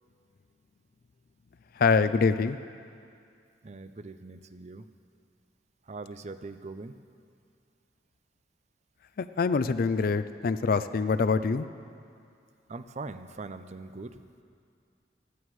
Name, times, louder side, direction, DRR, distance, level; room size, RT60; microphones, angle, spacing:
voice 1, 1.8-2.6 9.2-11.7, left 4 dB, 50° left, 12 dB, 0.4 m, -25 dB
voice 2, 3.6-4.9 5.9-6.9 12.7-14.2, right 3 dB, 40° right, 11 dB, 0.5 m, -41 dB
19.5 x 14.5 x 3.2 m, 2.4 s
head